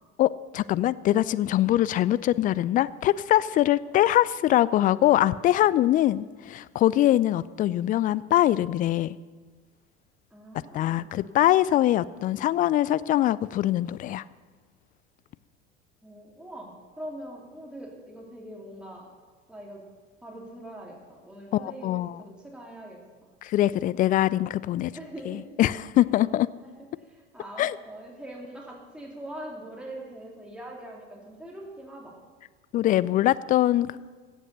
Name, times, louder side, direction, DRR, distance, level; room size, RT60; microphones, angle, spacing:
voice 1, 0.2-9.2 10.7-14.2 21.5-22.2 23.4-24.9 25.2-26.5 27.6-27.8 32.7-34.1, left 13 dB, 25° left, 18 dB, 0.3 m, -23 dB
voice 2, 10.3-11.1 16.0-19.1 19.5-19.8 20.2-23.0 24.9-25.5 26.6-26.7 27.0-32.1 33.9-34.1, right 1 dB, 5° right, -2 dB, 2.8 m, -42 dB
16.0 x 8.0 x 6.7 m, 1.4 s
figure-of-eight pair, 70°, 35 cm